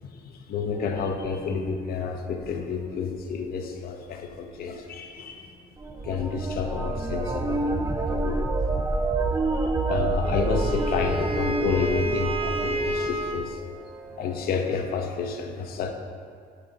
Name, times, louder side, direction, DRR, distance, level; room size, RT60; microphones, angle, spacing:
voice 1, 0.1-5.6 6.0-7.8 8.1-8.4 9.4-13.6 14.2-15.9, left 6 dB, 65° left, 3 dB, 1.0 m, -30 dB
sound 1, 0.7-3.2 5.8-13.6 13.9-14.5, right 3 dB, 15° right, 0.6 m, -29 dB
Wind instrument woodwind instrument, 10.2-13.5, right 1 dB, 35° right, 1.0 m, -29 dB
11.5 x 4.1 x 5.1 m, 2.3 s
cardioid pair, 110°, 17 cm